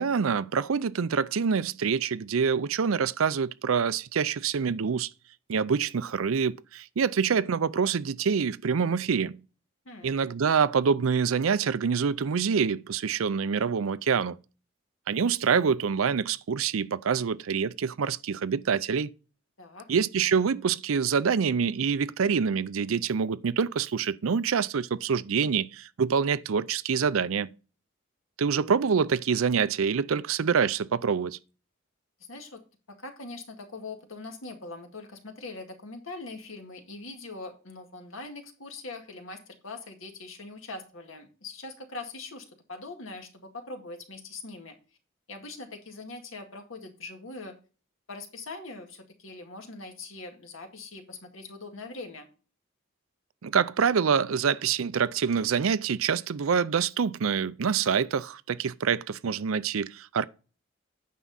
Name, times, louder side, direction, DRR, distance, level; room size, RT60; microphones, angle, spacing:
voice 1, 0.0-5.1 5.5-9.4 10.0-14.4 15.1-19.1 19.9-27.5 28.4-31.4 53.4-60.3, right 6 dB, 80° right, 0.5 m, -26 dB
voice 2, 9.9-10.2 19.6-19.9 32.3-32.6 32.9-44.8 45.3-47.5 48.1-52.3, left 3 dB, 75° left, 2.0 m, -42 dB
9.3 x 6.1 x 4.1 m
head